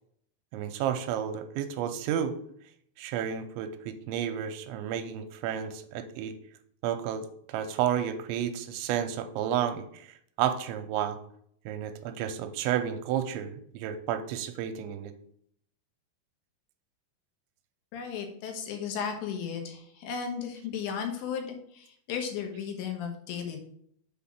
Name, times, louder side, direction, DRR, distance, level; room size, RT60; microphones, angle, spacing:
voice 1, 0.5-2.3 3.0-6.4 6.8-10.1 10.4-11.2 11.7-15.1, right 9 dB, 85° right, 8 dB, 2.9 m, -31 dB
voice 2, 17.9-23.6, left 7 dB, 75° left, 3 dB, 3.2 m, -35 dB
7.1 x 4.2 x 5.7 m, 0.66 s
omnidirectional pair, 5.4 m